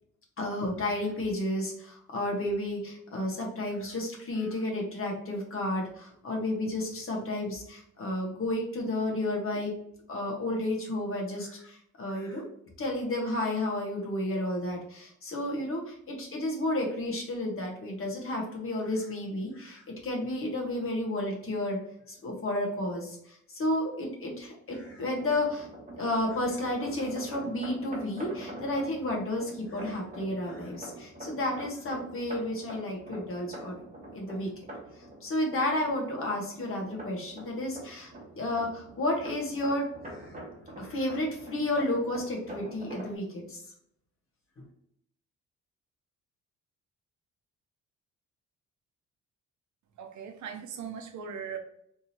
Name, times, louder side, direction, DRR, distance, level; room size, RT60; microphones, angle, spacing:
voice 1, 0.4-9.8 10.1-12.4 12.8-21.8 22.1-25.7 26.0-33.8 34.1-34.5 35.2-40.3 40.8-43.6 44.6-44.7, left 1 dB, 45° left, -1 dB, 1.4 m, -32 dB
sound 1, 24.7-43.1, right 1 dB, 25° right, 1.4 m, -45 dB
voice 2, 50.0-51.6, right 7 dB, 70° right, 5 dB, 0.7 m, -39 dB
3.6 x 2.8 x 2.8 m, 0.71 s
cardioid pair, 90°, 30 cm